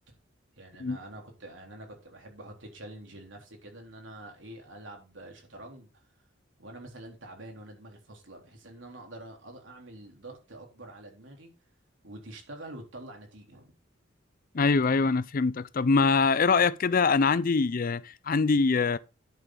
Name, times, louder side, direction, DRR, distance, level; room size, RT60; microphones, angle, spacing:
voice 1, 0.6-6.0 6.6-11.5 12.0-13.7, right 1 dB, 75° right, 3.8 m, -46 dB
voice 2, 14.5-19.0, left 4 dB, 45° left, 0.5 m, -24 dB
11.0 x 7.8 x 3.9 m
head